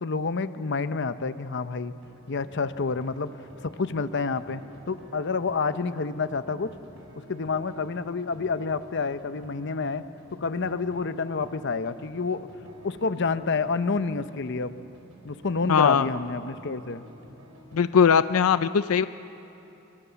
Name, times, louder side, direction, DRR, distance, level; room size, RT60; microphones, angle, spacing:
voice 1, 0.0-1.9 2.3-3.3 3.6-4.6 4.9-6.7 7.3-10.0 10.4-12.5 12.8-14.8 15.2-17.0, left 4 dB, 55° left, 12 dB, 0.8 m, -28 dB
sound 1, 2.0-17.9, equal, 65° right, 4.8 m, -51 dB
voice 2, 15.7-16.1 17.7-19.1, left 7 dB, 85° left, 13 dB, 0.5 m, -20 dB
27.0 x 23.5 x 7.0 m, 2.9 s
head